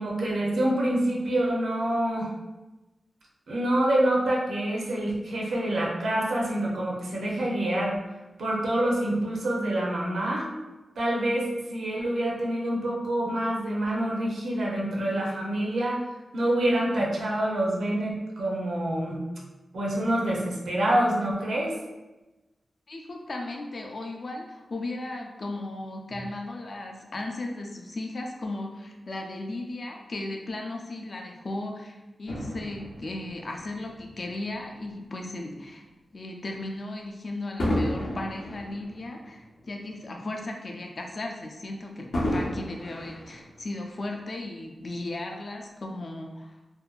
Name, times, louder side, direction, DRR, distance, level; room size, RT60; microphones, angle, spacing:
voice 1, 0.0-2.3 3.5-8.0 8.4-10.5 11.0-16.0 16.3-19.2 19.7-21.7, right 1 dB, 85° right, -3 dB, 0.6 m, -26 dB
voice 2, 22.9-35.8 36.1-46.5, left 2 dB, 45° left, 2 dB, 0.3 m, -36 dB
Fireworks, 32.3-34.9 35.5-35.7 37.6-40.1 40.5-40.6 42.1-44.0 44.7-44.8, left 1 dB, 85° left, 0.6 m, -33 dB
2.6 x 2.1 x 2.3 m, 1.1 s
wide cardioid pair, 160°, 0 cm